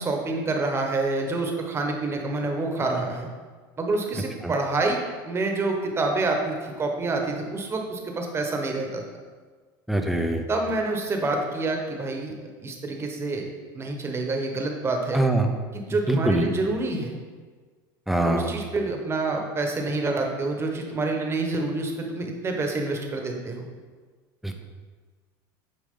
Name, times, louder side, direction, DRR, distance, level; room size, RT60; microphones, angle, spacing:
voice 1, 0.0-3.3 3.8-5.0 5.2-9.0 10.5-12.3 12.6-13.4 13.7-15.2 15.7-17.1 18.2-23.6, right 3 dB, 25° right, 2 dB, 1.2 m, -27 dB
voice 2, 9.9-10.4 15.1-15.5 15.9-16.5 18.1-18.5 24.4-24.6, right 1 dB, ahead, 4 dB, 0.7 m, -23 dB
8.5 x 4.9 x 3.8 m, 1.5 s
supercardioid pair, 115°, 11 cm